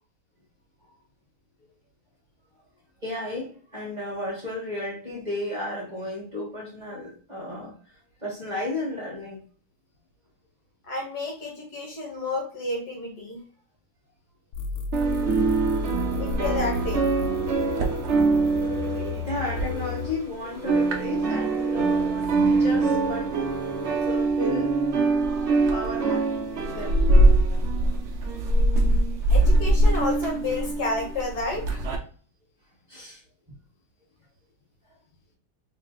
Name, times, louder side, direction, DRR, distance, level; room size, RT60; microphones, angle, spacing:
voice 1, 3.0-9.4 19.2-23.5 24.1-24.8 25.4-26.2 26.7-27.0 32.9-33.2, left 2 dB, 25° right, 1.2 m, -34 dB
voice 2, 10.9-13.4 16.2-17.0 29.3-31.9, left 3 dB, 60° left, 1.5 m, -30 dB
sound 1, 14.5-20.1, left 6 dB, 75° left, 0.7 m, -33 dB
sound 2, 14.9-20.3 20.5-32.0, right 2 dB, 70° right, 0.6 m, -23 dB
sound 3, 15.0-24.3, left 1 dB, 10° left, 1.7 m, -39 dB
3.1 x 3.0 x 3.6 m
omnidirectional pair, 2.0 m